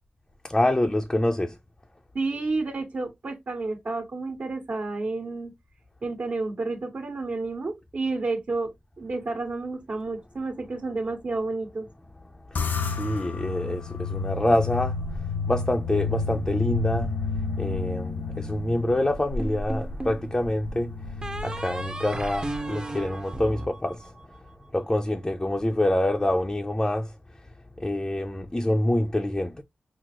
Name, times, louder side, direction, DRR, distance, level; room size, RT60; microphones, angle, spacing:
voice 1, 0.4-1.6 12.5-24.1 24.7-27.1 27.8-29.6, left 1 dB, 20° left, 0.6 m, -26 dB
voice 2, 2.1-5.5 6.0-8.7 9.0-11.9, right 3 dB, 60° right, 1.4 m, -30 dB
sound 1, 12.6-23.2, left 4 dB, 85° left, 0.8 m, -31 dB
sound 2, 19.4-20.2 21.2-24.5, right 2 dB, 25° right, 0.8 m, -35 dB
5.9 x 2.0 x 3.0 m
wide cardioid pair, 80°, 3 cm